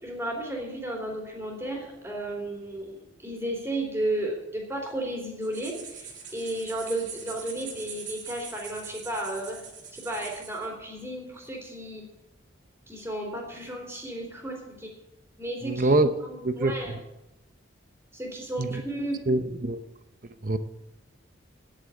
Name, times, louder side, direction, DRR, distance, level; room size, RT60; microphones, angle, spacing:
voice 1, 0.0-9.6 9.9-12.0 12.9-14.9 15.4-15.9 16.2-17.0 18.1-19.2, right 1 dB, 10° right, -2 dB, 3.1 m, -33 dB
sound 1, 5.4-10.7, right 6 dB, 65° right, 3.1 m, -42 dB
voice 2, 15.6-16.1 16.4-17.0 18.6-18.8 19.3-19.8 20.4-20.6, right 2 dB, 45° right, 10 dB, 0.8 m, -24 dB
10.0 x 9.1 x 8.8 m, 0.93 s
head